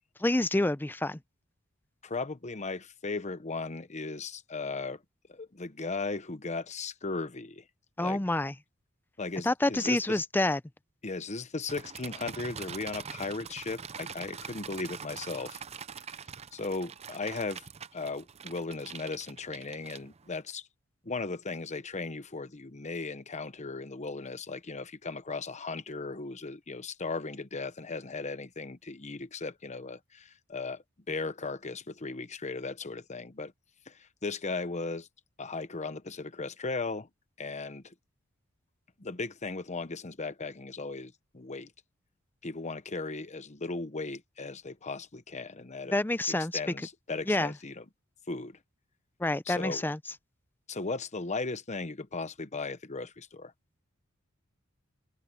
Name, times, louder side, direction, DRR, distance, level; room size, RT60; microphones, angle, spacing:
voice 1, 0.2-1.2 8.0-8.5 9.4-10.6 45.9-46.5 47.3-47.5 49.2-50.0, left 2 dB, 10° left, 0.5 m, -27 dB
voice 2, 2.0-5.0 5.3-7.6 8.0-8.2 9.2-10.2 11.0-15.6 16.5-17.6 17.9-20.7 21.0-33.5 33.9-35.1 35.4-37.1 37.4-37.9 39.0-41.7 42.4-45.9 46.5-47.8 48.3-48.6 49.5-49.8 50.7-53.5, left 3 dB, 35° left, 1.0 m, -37 dB
sound 1, 11.7-20.4, right 6 dB, 30° right, 0.6 m, -44 dB
head